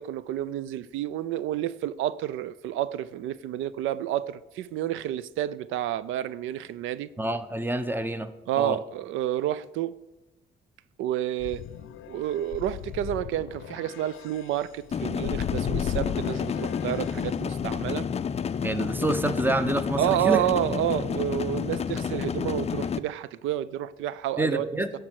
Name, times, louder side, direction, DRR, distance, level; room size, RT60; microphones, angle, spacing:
voice 1, 0.0-7.1 8.5-9.9 11.0-11.6 12.1-18.1 20.0-24.7, right 12 dB, 90° right, 0.4 m, -29 dB
voice 2, 7.2-8.3 8.6-8.8 18.6-20.4 24.4-24.9, right 2 dB, 10° right, 0.8 m, -27 dB
sound 1, 11.4-18.1, left 11 dB, 80° left, 0.6 m, -37 dB
sound 2, 14.9-23.0, left 7 dB, 30° left, 0.4 m, -30 dB
10.5 x 4.5 x 7.7 m
cardioid pair, 90°, 20 cm